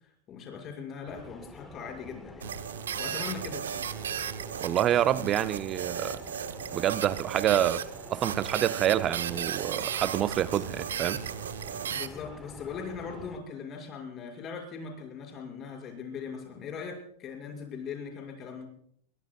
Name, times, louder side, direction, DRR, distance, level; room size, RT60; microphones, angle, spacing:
voice 1, 0.3-2.5 3.0-3.9 11.9-18.7, left 6 dB, 35° left, 6.3 m, -40 dB
sound 1, 1.0-13.4, left 2 dB, 10° left, 1.3 m, -47 dB
sound 2, 2.4-12.1, right 8 dB, 85° right, 0.9 m, -35 dB
voice 2, 4.6-6.2 6.7-7.8 8.1-11.2, right 11 dB, 35° right, 0.6 m, -27 dB
22.0 x 21.5 x 2.4 m
hypercardioid pair, 105°, 0 cm